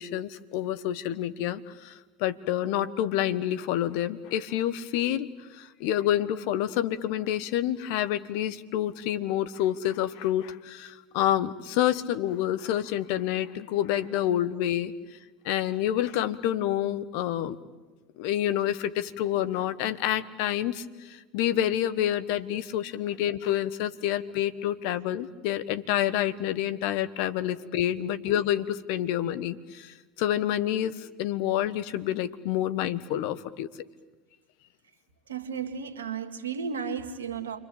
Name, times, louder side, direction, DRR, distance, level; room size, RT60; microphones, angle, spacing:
voice 1, 0.0-14.9 15.4-17.6 18.2-33.7, left 12 dB, 65° left, 13 dB, 1.2 m, -28 dB
voice 2, 35.3-37.6, right 6 dB, 85° right, 7 dB, 2.0 m, -34 dB
29.0 x 23.5 x 8.6 m, 1.2 s
hypercardioid pair, 75°, 0 cm